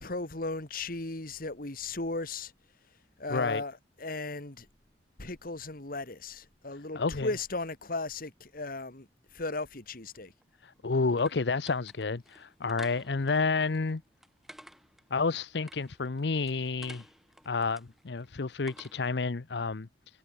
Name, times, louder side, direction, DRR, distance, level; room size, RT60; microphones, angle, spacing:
voice 1, 0.0-2.5 3.2-4.7 5.2-9.1 9.3-10.3, left 3 dB, 55° left, 2.3 m, -36 dB
voice 2, 3.3-3.6 6.9-7.3 10.6-14.0 15.1-17.1 17.5-19.9, left 4 dB, 70° left, 0.7 m, -30 dB
sound 1, 10.4-19.2, equal, ahead, 7.0 m, -54 dB
head